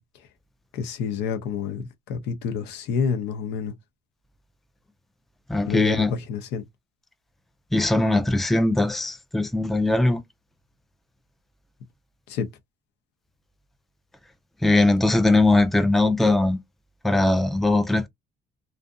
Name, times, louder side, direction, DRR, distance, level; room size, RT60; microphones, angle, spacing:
voice 1, 0.7-3.7 5.7-6.6 12.3-12.5, left 6 dB, 90° left, 0.7 m, -28 dB
voice 2, 5.5-6.1 7.7-10.2 14.6-16.6 17.0-18.1, left 2 dB, ahead, 0.4 m, -20 dB
2.6 x 2.4 x 2.3 m
cardioid pair, 110°, 17 cm